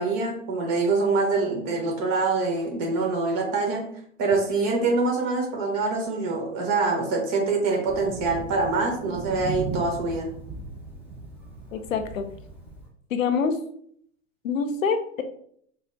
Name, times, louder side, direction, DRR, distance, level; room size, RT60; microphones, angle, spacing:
voice 1, 0.0-3.8 4.2-10.3, right 3 dB, 40° right, 0 dB, 1.3 m, -25 dB
Thunder, 7.9-12.9, right 4 dB, 5° right, 0.9 m, -37 dB
voice 2, 11.7-12.3 13.1-13.6 14.4-15.2, left 5 dB, 90° left, 8 dB, 0.6 m, -25 dB
4.5 x 2.1 x 2.5 m, 0.65 s
hypercardioid pair, 110°, 39 cm